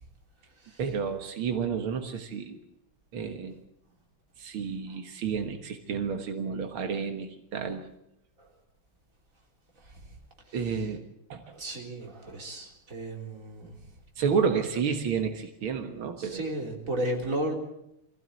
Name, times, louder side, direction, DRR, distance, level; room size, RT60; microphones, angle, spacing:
voice 1, 0.8-2.6 3.1-3.6 4.4-7.8 10.5-11.0 11.3-11.4 14.2-16.5, right 6 dB, 85° right, 5 dB, 2.4 m, -30 dB
voice 2, 9.8-10.2 10.5-10.8 11.4-13.8 16.2-17.5, right 1 dB, 40° right, 1 dB, 4.0 m, -35 dB
23.5 x 15.5 x 8.3 m, 0.81 s
omnidirectional pair, 2.2 m